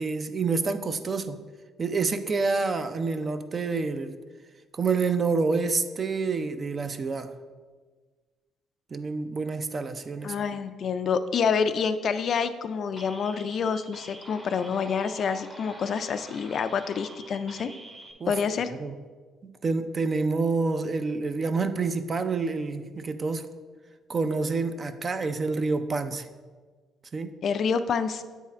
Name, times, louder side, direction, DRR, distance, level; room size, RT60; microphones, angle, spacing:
voice 1, 0.0-1.4 1.8-4.2 4.7-7.3 8.9-10.4 18.2-18.4 18.7-19.0 19.6-23.5 24.1-26.3 27.1-27.3, right 4 dB, 35° right, 10 dB, 0.4 m, -28 dB
voice 2, 10.2-17.7 18.3-18.7 27.4-28.2, left 6 dB, 55° left, 11 dB, 0.4 m, -27 dB
sound 1, 13.0-18.1, right 1 dB, 15° right, 0.9 m, -46 dB
8.3 x 3.6 x 4.3 m, 1.4 s
cardioid pair, 100°, 0 cm